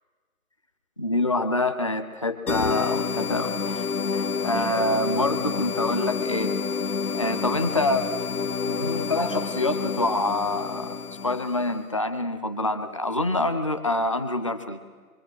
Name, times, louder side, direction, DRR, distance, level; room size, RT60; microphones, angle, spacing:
voice 1, 1.0-3.9 4.1-6.5 7.1-8.1 8.7-14.8, left 2 dB, 20° left, 9 dB, 0.6 m, -26 dB
sound 1, 2.5-11.8, left 5 dB, 85° left, 1.0 m, -29 dB
24.5 x 24.5 x 6.2 m, 1.5 s
figure-of-eight pair, 150°, 44 cm